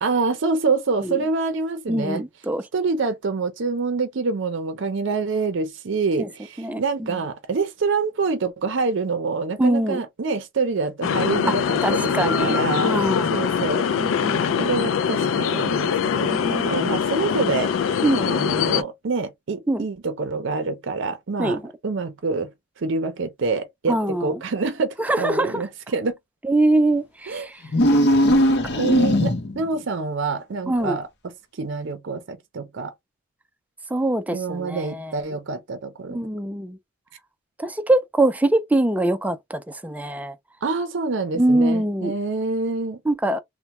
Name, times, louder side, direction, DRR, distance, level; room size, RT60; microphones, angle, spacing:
voice 1, 0.0-2.2 2.7-13.0 13.3-13.9 14.6-22.5 22.8-26.2 27.3-27.5 28.8-32.9 34.3-36.2 40.6-43.0, right 4 dB, 65° right, 0.5 m, -26 dB
voice 2, 1.9-2.6 6.2-6.3 6.6-7.1 9.6-10.0 11.5-11.6 11.8-13.4 14.0-14.9 16.3-17.0 18.0-18.3 19.7-19.9 21.4-21.6 23.9-24.4 25.0-25.6 26.4-27.6 28.2-28.4 28.7-28.8 30.7-31.0 33.9-35.2 36.1-36.8 37.6-40.3 41.3-42.1 43.1-43.4, right 1 dB, 10° right, 0.4 m, -23 dB
sound 1, 11.0-18.8, left 7 dB, 80° left, 0.3 m, -23 dB
sound 2, 27.6-29.7, equal, 60° left, 0.8 m, -18 dB
3.3 x 2.1 x 2.9 m
head